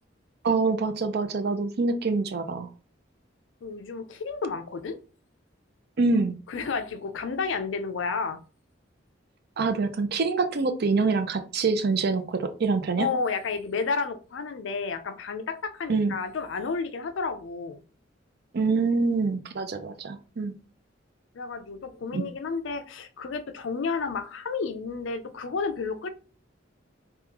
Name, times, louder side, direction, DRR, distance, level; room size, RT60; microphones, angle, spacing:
voice 1, 0.4-2.7 6.0-6.3 9.6-13.1 15.9-16.1 18.5-20.6 22.1-22.2, right 4 dB, 60° right, 0.5 m, -25 dB
voice 2, 3.6-5.0 6.5-8.4 13.0-17.8 21.3-26.1, left 4 dB, 80° left, 0.4 m, -31 dB
3.6 x 2.3 x 3.0 m
head